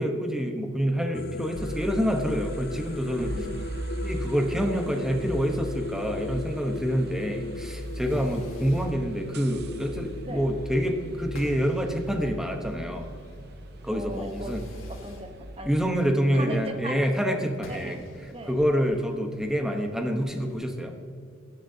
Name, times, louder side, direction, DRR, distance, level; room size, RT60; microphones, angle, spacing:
voice 1, 0.0-3.3 4.0-13.1 13.8-14.6 15.7-18.0 18.5-20.9, equal, 5° right, 3 dB, 1.0 m, -27 dB
sound 1, 1.1-11.7, left 3 dB, 45° left, 0.5 m, -38 dB
sound 2, 1.5-15.9, right 1 dB, 55° right, 0.8 m, -38 dB
voice 2, 3.1-3.8 8.1-8.5 10.2-10.5 13.9-14.5 14.9-15.7 16.3-17.0 17.7-18.0 18.3-18.6, right 1 dB, 30° right, 5 dB, 1.1 m, -38 dB
Fireworks, 7.5-20.5, left 1 dB, 80° left, 2.2 m, -50 dB
17.0 x 11.5 x 2.8 m, 2.4 s
head